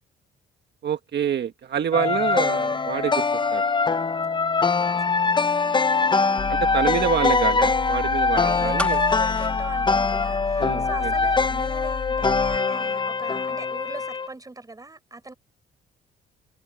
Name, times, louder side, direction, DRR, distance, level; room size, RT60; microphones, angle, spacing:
voice 1, 0.8-3.2 3.5-3.6 6.5-9.0 10.6-11.1, right 9 dB, 60° right, 1.7 m, -27 dB
sound 1, 1.9-14.3, left 4 dB, 25° left, 0.7 m, -23 dB
voice 2, 4.6-5.8 6.3-6.5 8.3-15.3, right 2 dB, 20° right, 4.3 m, -38 dB
sound 2, 6.4-12.6, left 6 dB, 45° left, 1.3 m, -33 dB
sound 3, 8.8-10.8 11.1-11.2, left 1 dB, 5° left, 1.4 m, -33 dB
cardioid pair, 90°, 20 cm